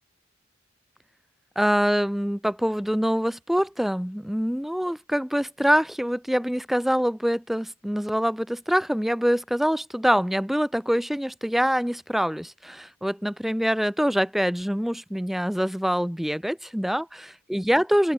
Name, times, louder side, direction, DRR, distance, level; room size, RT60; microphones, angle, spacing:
voice 1, 1.6-18.1, equal, ahead, 0.4 m, -25 dB
open air
head